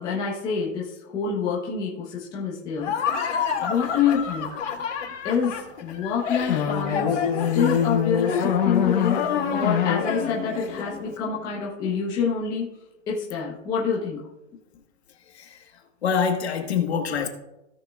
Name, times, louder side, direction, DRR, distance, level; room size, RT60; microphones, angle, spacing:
voice 1, 0.0-2.9 3.2-3.3 3.6-4.6 5.2-7.2 7.5-12.7 13.1-14.2, left 6 dB, 10° left, 0.9 m, -27 dB
Laughter, 2.8-11.1, left 7 dB, 75° left, 2.8 m, -31 dB
sound 1, 6.5-11.6, left 8 dB, 40° left, 1.8 m, -25 dB
voice 2, 15.3-15.6 16.0-17.3, left 6 dB, 55° left, 1.5 m, -25 dB
17.0 x 6.4 x 2.4 m
hypercardioid pair, 170°, 38 cm